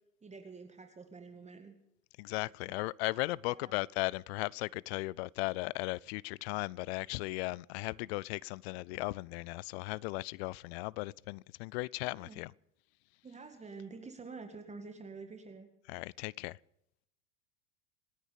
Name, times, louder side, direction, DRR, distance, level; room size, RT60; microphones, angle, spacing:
voice 1, 0.2-1.7 2.6-2.8 3.5-3.8 7.9-8.1 12.0-12.4 13.2-15.7, right 4 dB, 15° right, 2.0 m, -48 dB
voice 2, 2.2-12.5 15.9-16.6, left 22 dB, 45° left, 0.5 m, -37 dB
27.0 x 10.0 x 5.2 m
hypercardioid pair, 95°, 44 cm